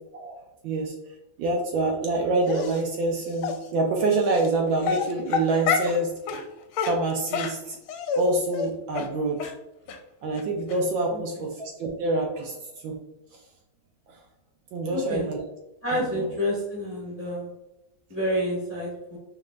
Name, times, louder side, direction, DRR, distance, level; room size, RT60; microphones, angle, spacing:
voice 1, 0.6-0.9 1.4-6.1 6.8-7.8 8.2-9.5 10.2-13.0 14.7-15.4 15.9-16.3, right 2 dB, 75° right, 1 dB, 1.2 m, -26 dB
Dog, 2.5-2.8 3.4-3.5 4.3-4.5 4.8-6.0 6.3-6.4 6.7-8.2 8.5-8.7 8.9-9.1 9.4-9.5 9.9-10.0 10.4-10.5 10.7-10.8, left 6 dB, 80° left, 1.4 m, -27 dB
voice 2, 14.9-15.3 15.8-17.5 18.1-19.2, equal, 20° left, -6 dB, 1.1 m, -29 dB
5.0 x 3.1 x 2.4 m, 0.92 s
omnidirectional pair, 2.4 m